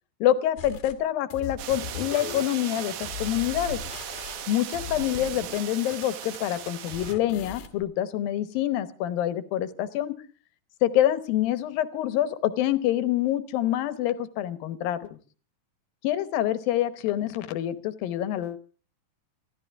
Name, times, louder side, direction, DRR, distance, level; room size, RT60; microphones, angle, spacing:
voice 1, 0.2-3.8 4.5-10.2 10.8-15.2 16.0-18.6, left 12 dB, 80° left, 12 dB, 2.8 m, -26 dB
sound 1, 0.6-1.0 1.3-5.6 5.9-7.9, left 7 dB, 65° left, 2.8 m, -39 dB
sound 2, 1.6-7.2, right 11 dB, 70° right, 2.4 m, -38 dB
26.5 x 14.0 x 3.5 m, 0.39 s
omnidirectional pair, 4.1 m